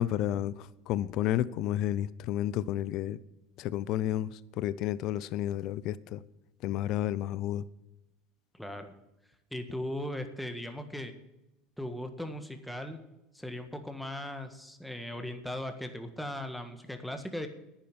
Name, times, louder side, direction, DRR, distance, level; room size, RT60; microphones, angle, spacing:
voice 1, 0.0-3.2 3.6-6.2 6.6-7.6, left 12 dB, 55° left, 19 dB, 0.6 m, -31 dB
voice 2, 8.5-8.9 9.5-11.1 11.8-13.0 13.3-17.5, left 1 dB, ahead, 6 dB, 1.7 m, -38 dB
10.5 x 9.8 x 7.4 m, 0.93 s
hypercardioid pair, 75°, 0 cm